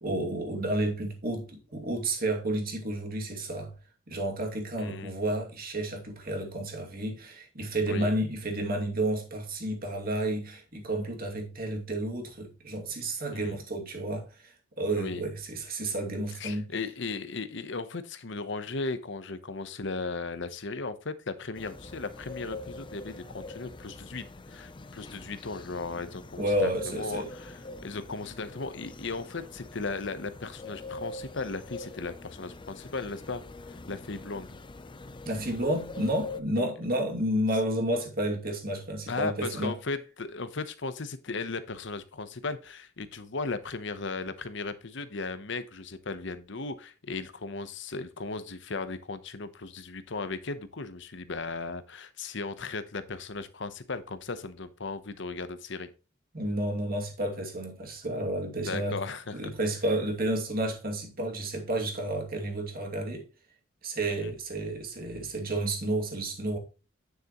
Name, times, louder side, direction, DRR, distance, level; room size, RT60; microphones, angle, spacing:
voice 1, 0.0-3.7 4.1-16.6 26.4-27.3 35.2-39.7 56.3-59.0 59.3-63.3 63.8-66.6, right 1 dB, 50° right, 2.5 m, -31 dB
voice 2, 4.8-5.1 7.9-8.1 13.3-13.6 15.0-15.2 16.4-34.6 36.6-36.7 39.1-55.9 58.6-59.5 64.1-64.3, left 3 dB, 65° left, 0.9 m, -36 dB
sound 1, 21.6-36.4, left 2 dB, 25° left, 0.6 m, -44 dB
9.5 x 6.6 x 3.0 m
head